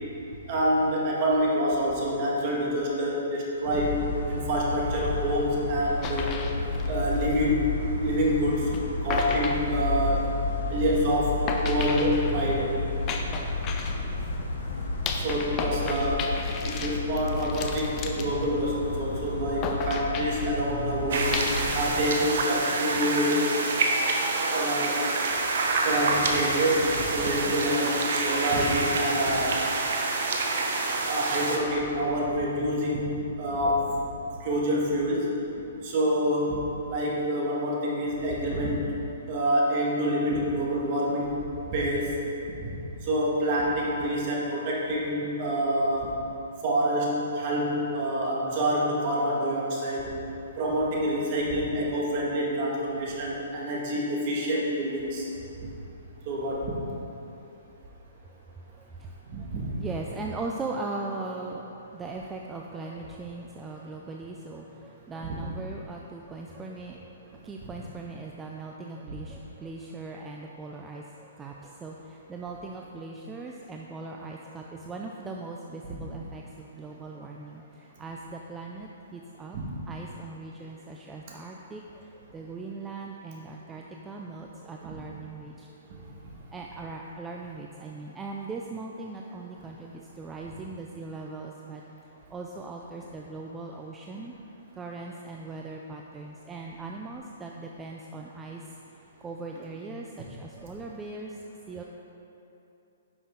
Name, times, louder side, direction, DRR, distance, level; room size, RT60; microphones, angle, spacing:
voice 1, 0.5-4.0 4.2-6.4 6.9-7.7 8.0-8.7 9.0-10.3 10.6-12.8 14.3-14.4 15.2-16.3 16.6-21.4 21.7-23.4 24.4-25.1 25.8-29.6 31.1-34.0 34.4-35.3 35.8-36.6 36.9-38.9 39.3-41.4 41.7-42.1 42.6-42.7 43.0-46.1 46.6-50.2 50.6-55.2 55.6-55.7 56.3-56.7 59.3-59.8 65.2-65.3 67.6-67.7 79.5-79.7 84.8-85.0, equal, 40° right, -4 dB, 2.0 m, -27 dB
sound 1, 3.7-21.9, left 3 dB, 80° left, 1.8 m, -32 dB
sound 2, 6.0-7.8 8.7-8.8 9.1-10.4 11.5-14.4 15.1-19.0 19.6-20.5 21.3-22.3 22.6-23.2, left 5 dB, 25° left, 0.7 m, -35 dB
sound 3, 21.1-31.6, right 3 dB, 65° right, 1.1 m, -27 dB
voice 2, 58.7-59.5 59.8-79.6 79.9-94.3 94.8-98.7 99.2-101.4 101.7-101.8, right 3 dB, 10° right, 0 dB, 0.4 m, -39 dB
10.0 x 6.1 x 3.8 m, 2.9 s
hypercardioid pair, 150°, 0 cm